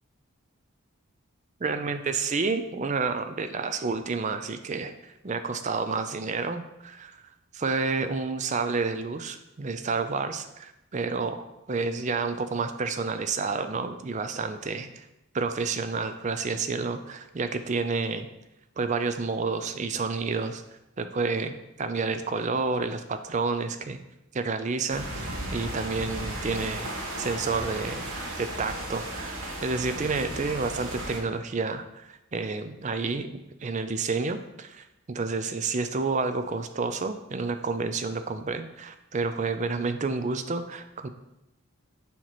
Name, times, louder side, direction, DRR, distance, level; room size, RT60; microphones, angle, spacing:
voice 1, 1.6-7.2 7.5-11.4 11.7-15.0 15.3-18.3 18.8-20.6 21.0-24.0 24.3-26.9 27.2-28.1 28.4-33.3 33.6-41.1, right 4 dB, 35° right, 9 dB, 0.4 m, -30 dB
sound 1, 24.9-31.2, right 1 dB, 75° right, 1.4 m, -35 dB
7.0 x 3.0 x 5.8 m, 0.90 s
head